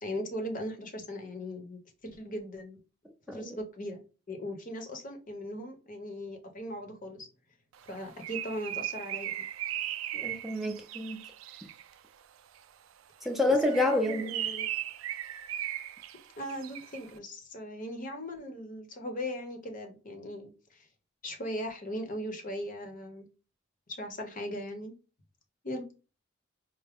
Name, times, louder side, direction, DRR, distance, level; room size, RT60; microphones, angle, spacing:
voice 1, 0.0-2.8 3.3-7.3 7.9-9.5 13.5-14.7 16.4-20.9 21.2-23.3 23.9-24.9 25.6-25.9, equal, 40° left, 0.8 m, -39 dB
Bird, 7.8-11.9 13.5-17.1, right 12 dB, 85° right, 0.4 m, -37 dB
voice 2, 10.1-11.2 13.2-14.3, left 2 dB, ahead, 0.5 m, -28 dB
4.6 x 2.1 x 3.5 m
head